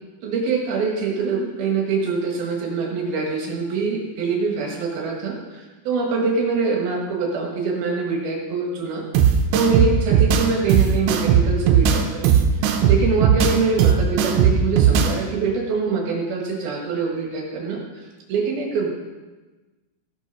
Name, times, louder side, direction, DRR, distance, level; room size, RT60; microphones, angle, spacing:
voice 1, 0.2-9.0 9.5-12.3 12.8-17.8 18.3-18.9, right 4 dB, 65° right, -1 dB, 3.2 m, -24 dB
sound 1, 9.1-15.1, right 7 dB, 80° right, 3.0 m, -17 dB
15.5 x 6.2 x 5.7 m, 1.2 s
omnidirectional pair, 5.4 m